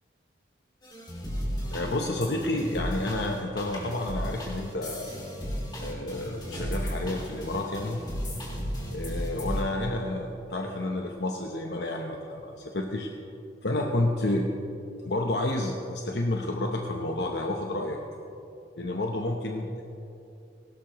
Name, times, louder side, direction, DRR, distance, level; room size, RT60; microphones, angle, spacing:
sound 1, 0.8-9.6, equal, 25° left, 2.8 m, -34 dB
voice 1, 1.7-5.2 5.8-8.1 8.9-13.1 13.6-14.5 15.0-18.0 18.8-19.8, left 1 dB, 65° left, 1 dB, 0.9 m, -30 dB
18.5 x 17.0 x 3.1 m, 2.7 s
head